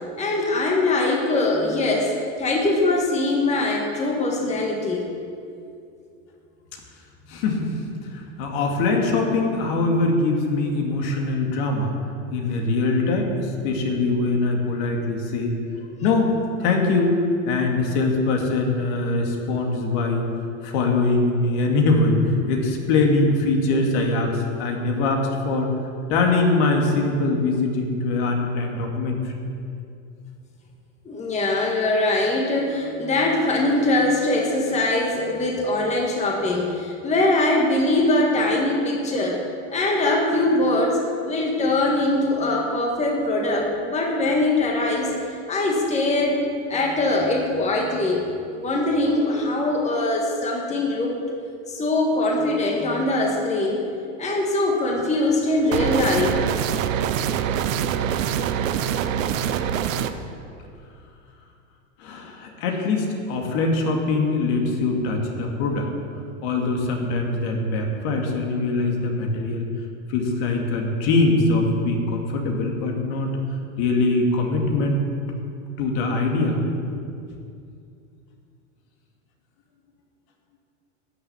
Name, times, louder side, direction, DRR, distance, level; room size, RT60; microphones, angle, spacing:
voice 1, 0.2-5.0 31.1-39.5 39.7-45.2 45.5-48.2 48.5-51.2 51.7-53.8 54.2-56.4, left 2 dB, 15° left, 0 dB, 1.7 m, -22 dB
voice 2, 7.3-7.7 8.1-11.9 12.3-15.5 16.0-16.3 16.6-17.2 17.5-20.3 20.6-25.7 26.1-29.3 62.0-65.9 66.4-69.6 70.1-73.4 73.8-75.0 75.8-76.6, left 3 dB, 55° left, 1 dB, 2.4 m, -22 dB
sound 1, 55.7-60.1, right 9 dB, 80° right, 0.9 m, -24 dB
12.5 x 6.7 x 8.5 m, 2.5 s
supercardioid pair, 125°, 39 cm